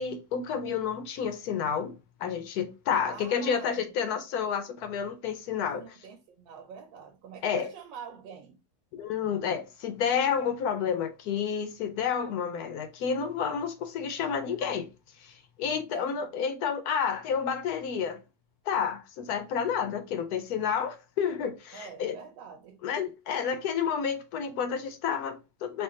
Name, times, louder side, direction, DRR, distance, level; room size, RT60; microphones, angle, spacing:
voice 1, 0.0-5.8 7.4-7.7 8.9-14.9 15.2-18.2 18.7-22.2 22.8-25.8, left 7 dB, 70° left, 0.9 m, -30 dB
voice 2, 3.0-4.0 5.7-8.6 15.7-16.3 21.7-22.8, right 6 dB, 85° right, 1.4 m, -46 dB
3.5 x 2.3 x 3.7 m
omnidirectional pair, 2.0 m